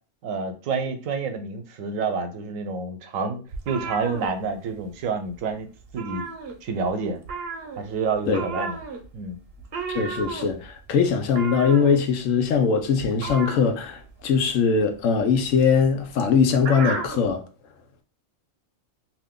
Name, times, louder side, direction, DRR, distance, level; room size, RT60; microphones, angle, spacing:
voice 1, 0.2-6.2 6.6-7.2 7.8-8.8 9.1-9.4, right 4 dB, 85° right, 1.0 m, -28 dB
sound 1, 3.5-5.0 5.3-5.5 5.8-6.9 7.2-17.3, right 4 dB, 60° right, 0.8 m, -34 dB
voice 2, 9.9-17.4, left 6 dB, 80° left, 1.0 m, -21 dB
2.6 x 2.5 x 3.5 m
omnidirectional pair, 1.3 m